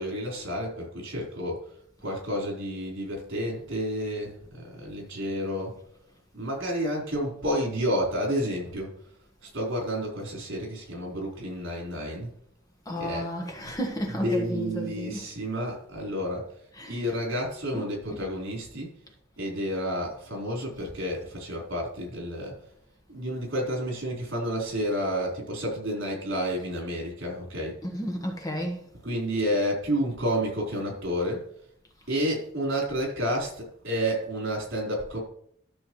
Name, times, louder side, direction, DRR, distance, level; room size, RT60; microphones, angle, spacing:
voice 1, 0.0-1.8 2.0-5.8 6.3-8.9 9.4-12.3 13.0-13.2 13.6-13.7 14.2-18.9 19.4-22.6 23.1-27.8 29.0-31.4 32.1-35.2, equal, 75° right, 4.1 m, -30 dB
voice 2, 12.8-15.3 16.7-17.2 17.7-18.0 27.8-28.9, equal, 20° left, 1.3 m, -33 dB
13.0 x 6.8 x 3.2 m
head